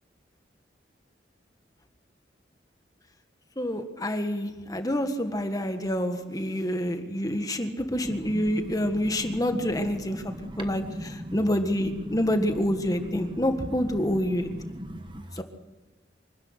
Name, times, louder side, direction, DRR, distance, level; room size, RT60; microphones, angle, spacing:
voice 1, 3.6-14.5 15.4-15.5, equal, 20° left, 7 dB, 1.6 m, -27 dB
voice 2, 8.3-8.6 9.2-9.4 9.8-11.4 11.8-12.2 13.0-13.4 14.1-15.4, equal, 30° right, 8 dB, 1.2 m, -38 dB
25.0 x 13.0 x 9.8 m, 1.1 s
head